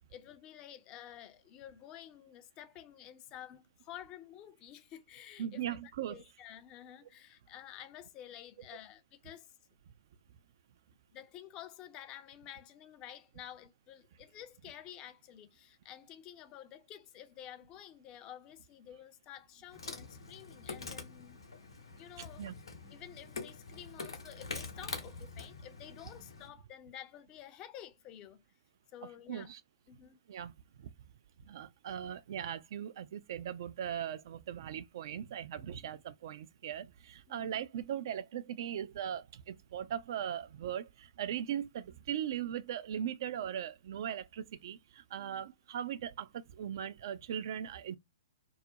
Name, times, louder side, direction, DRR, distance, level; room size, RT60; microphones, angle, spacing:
voice 1, 0.1-9.5 11.1-21.4 21.9-28.4 28.9-29.5 29.9-30.2 35.6-35.9 37.3-37.6 45.2-45.5, left 11 dB, 30° left, 0.4 m, -51 dB
voice 2, 5.4-6.2 22.4-22.6 29.3-29.6 30.3-30.5 30.8-30.9 31.5-48.0, right 9 dB, 55° right, 0.3 m, -39 dB
Insect, 19.7-26.5, left 4 dB, 75° left, 0.8 m, -45 dB
2.4 x 2.0 x 2.6 m
figure-of-eight pair, 115°, 3 cm